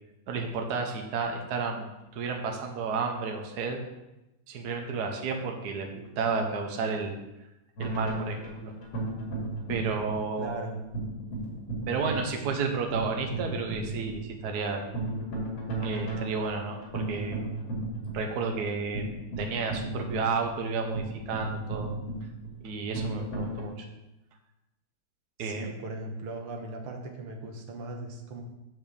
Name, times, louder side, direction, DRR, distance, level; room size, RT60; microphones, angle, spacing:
voice 1, 0.3-3.8 4.5-7.1 7.8-8.7 9.7-10.6 11.9-14.8 15.8-17.4 18.1-19.0 19.4-21.9 22.6-23.9 25.4-25.7, right 4 dB, 55° right, 3 dB, 1.5 m, -32 dB
sound 1, 7.8-23.7, right 2 dB, 65° left, 2.9 m, -35 dB
voice 2, 10.4-10.8 25.4-28.4, right 2 dB, 85° right, 2 dB, 2.1 m, -38 dB
7.9 x 5.2 x 6.9 m, 0.97 s
omnidirectional pair, 2.3 m